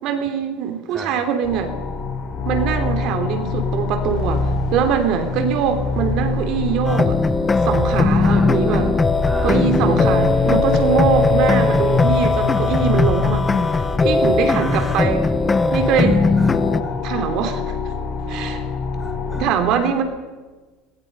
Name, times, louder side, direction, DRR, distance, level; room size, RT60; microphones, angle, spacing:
voice 1, 0.0-1.7 2.4-7.2 7.6-9.0 9.4-13.5 14.0-15.2 15.7-16.2 17.0-17.8 18.3-18.6 19.4-20.0, right 8 dB, 55° right, 7 dB, 3.2 m, -22 dB
sound 1, 1.4-19.5, left 4 dB, 45° left, 6.5 m, -25 dB
sound 2, 6.8-16.8, left 3 dB, 15° left, 1.0 m, -19 dB
voice 2, 8.2-8.9 9.2-9.6 14.5-15.0 15.8-17.1 19.0-19.4, right 1 dB, 10° right, 5 dB, 4.9 m, -33 dB
25.0 x 20.5 x 5.5 m, 1.3 s
cardioid pair, 140°, 0 cm